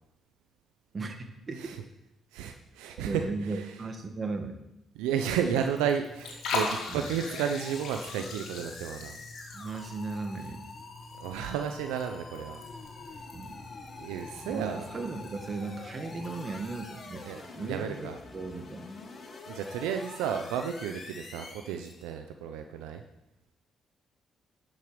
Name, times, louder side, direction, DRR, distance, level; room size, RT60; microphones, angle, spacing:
voice 1, 0.9-1.8 3.0-4.6 6.9-7.1 9.5-10.7 13.3-13.7 14.4-17.3 17.6-18.9, right 3 dB, 40° right, 6 dB, 1.7 m, -36 dB
voice 2, 2.3-3.7 5.0-9.2 11.2-12.6 14.0-14.8 17.2-18.2 19.5-23.0, right 8 dB, 90° right, 6 dB, 0.6 m, -32 dB
Liquid, 5.3-16.7, left 3 dB, 75° left, 2.2 m, -41 dB
sound 1, 7.2-22.1, left 3 dB, 45° left, 1.7 m, -46 dB
11.0 x 6.5 x 5.1 m, 0.91 s
supercardioid pair, 60°, 0 cm